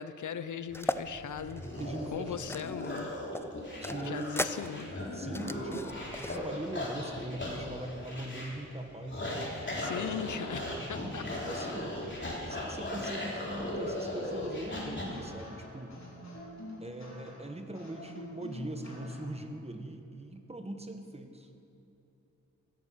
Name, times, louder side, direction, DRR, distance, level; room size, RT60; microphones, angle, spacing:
voice 1, 0.0-1.6 2.1-3.1 4.0-4.9 9.8-11.5, left 7 dB, 85° left, 12 dB, 0.6 m, -39 dB
sound 1, 0.7-15.0, left 1 dB, 40° left, 3.3 m, -38 dB
sound 2, 0.7-1.0 1.5-3.0 3.3-6.4, left 1 dB, 10° left, 0.4 m, -37 dB
voice 2, 1.8-2.5 3.8-4.5 5.1-9.4 10.8-11.9 12.5-16.0 16.8-21.5, right 1 dB, 20° right, 5 dB, 1.3 m, -41 dB
sound 3, 14.1-19.4, left 1 dB, 65° left, 3.8 m, -46 dB
16.0 x 9.2 x 7.0 m, 2.9 s
wide cardioid pair, 90°, 30 cm